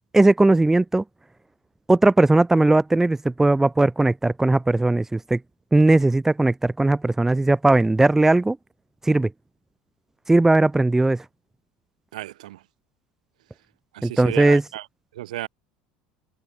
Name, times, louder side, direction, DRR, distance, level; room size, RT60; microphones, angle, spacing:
voice 1, 0.1-1.0 1.9-5.4 5.7-8.6 9.0-9.3 10.3-11.2 14.0-14.6, right 2 dB, 10° right, 1.3 m, -18 dB
voice 2, 12.1-12.6 13.9-14.8 15.1-15.5, right 15 dB, 80° right, 3.2 m, -33 dB
hypercardioid pair, 85°, 4 cm